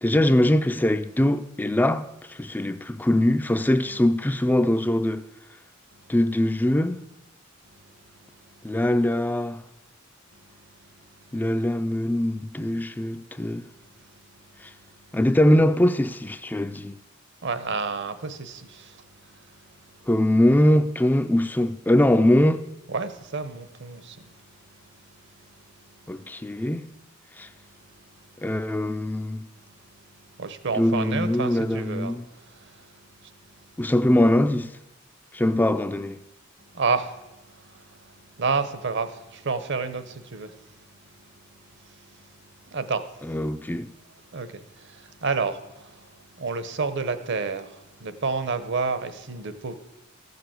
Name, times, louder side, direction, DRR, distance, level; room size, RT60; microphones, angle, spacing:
voice 1, 0.0-5.2 6.1-7.0 8.6-9.6 11.3-13.7 15.1-16.9 20.1-22.7 26.1-26.9 27.4-27.5 28.4-29.4 30.7-32.3 33.8-34.7 35.3-36.2 43.2-43.9, left 1 dB, 10° left, 0.4 m, -22 dB
voice 2, 17.4-19.0 22.9-24.3 30.4-32.2 32.4-32.9 33.2-33.3 36.7-38.1 38.4-40.6 41.9-42.2 42.7-43.1 43.7-43.8 44.3-46.1 46.4-49.8, right 4 dB, 60° right, 1.0 m, -30 dB
14.0 x 6.8 x 7.9 m
head